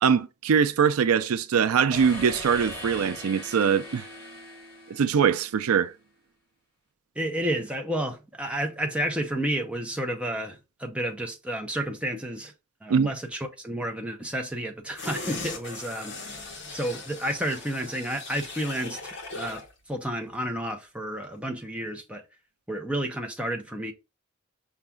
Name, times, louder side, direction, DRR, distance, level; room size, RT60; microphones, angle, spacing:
voice 1, 0.0-4.1 4.9-5.9 12.9-13.1, right 7 dB, 80° right, 0.4 m, -22 dB
sound 1, 1.9-5.7, left 1 dB, 15° left, 1.6 m, -40 dB
voice 2, 7.2-12.5 12.8-16.4 16.7-22.2 22.7-23.9, right 1 dB, 5° right, 0.5 m, -31 dB
sound 2, 15.0-19.7 20.1-20.2, left 3 dB, 50° left, 1.1 m, -39 dB
5.7 x 2.3 x 3.7 m
head